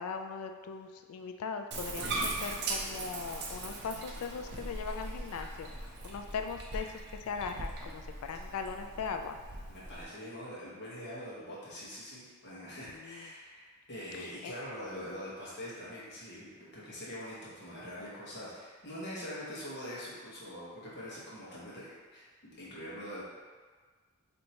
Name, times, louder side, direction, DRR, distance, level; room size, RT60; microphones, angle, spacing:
voice 1, 0.0-5.7 6.0-6.9 7.2-9.4 12.9-13.3 14.1-14.5, left 5 dB, 75° left, 6 dB, 0.3 m, -39 dB
Bathtub (filling or washing), 1.7-10.0, right 2 dB, 50° right, 0.5 m, -39 dB
voice 2, 9.7-23.2, equal, 55° left, -8 dB, 1.0 m, -44 dB
4.4 x 2.7 x 2.8 m, 1.5 s
head